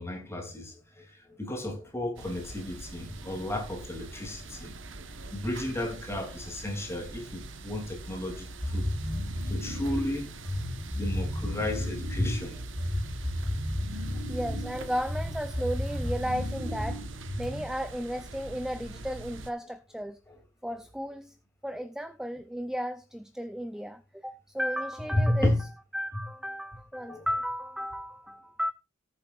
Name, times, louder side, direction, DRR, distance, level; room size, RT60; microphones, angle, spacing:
voice 1, 0.0-4.7 5.3-8.9 9.4-10.3 10.9-12.7 25.1-25.6 27.0-27.3, left 1 dB, 15° left, 2.8 m, -32 dB
sound 1, 2.2-19.5, right 2 dB, 70° right, 1.2 m, -43 dB
sound 2, 8.6-17.8, equal, 25° right, 3.5 m, -33 dB
voice 2, 14.3-17.0 17.4-20.2 20.6-21.4 21.6-25.5 25.9-28.7, equal, 5° right, 0.5 m, -34 dB
18.5 x 7.4 x 2.5 m
head